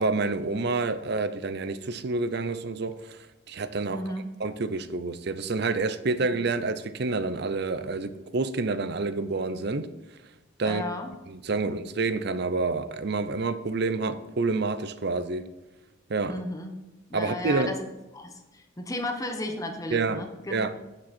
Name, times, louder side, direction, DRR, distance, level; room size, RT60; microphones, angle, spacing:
voice 1, 0.0-2.9 3.5-4.0 4.4-9.9 10.6-10.8 11.3-15.4 16.1-16.3 17.1-17.7 19.9-20.7, right 3 dB, 60° right, 12 dB, 0.6 m, -28 dB
voice 2, 3.9-4.3 10.6-11.1 11.5-11.7 16.3-16.7 17.1-17.8 18.1-20.6, left 1 dB, 20° left, 5 dB, 1.0 m, -34 dB
8.8 x 7.5 x 4.3 m, 1.0 s
head